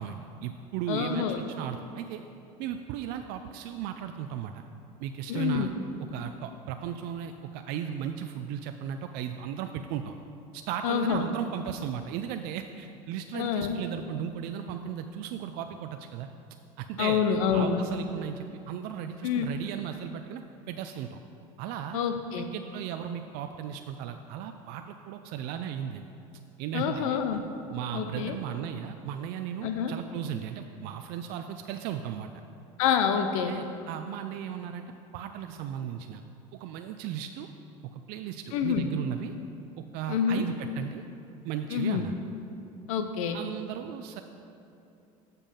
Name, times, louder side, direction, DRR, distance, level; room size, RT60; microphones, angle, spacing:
voice 1, 0.0-2.2 2.6-4.6 5.0-5.7 6.1-10.1 10.5-16.3 16.8-17.2 17.5-21.2 21.6-22.0 22.5-26.1 26.6-27.2 27.7-32.3 33.1-34.8 35.1-36.2 36.5-37.5 37.9-39.3 39.9-41.0 41.4-42.1 43.3-44.2, right 9 dB, 65° right, 7 dB, 0.4 m, -36 dB
voice 2, 0.9-1.4 5.3-5.7 10.8-11.3 13.3-13.8 17.0-17.8 19.2-19.5 21.9-22.5 26.7-27.4 27.9-28.4 29.6-29.9 32.8-33.5 38.5-38.9 40.1-40.5 41.7-42.0 42.9-43.4, left 7 dB, 85° left, 7 dB, 0.5 m, -27 dB
7.2 x 5.3 x 5.5 m, 2.8 s
supercardioid pair, 90°, 17 cm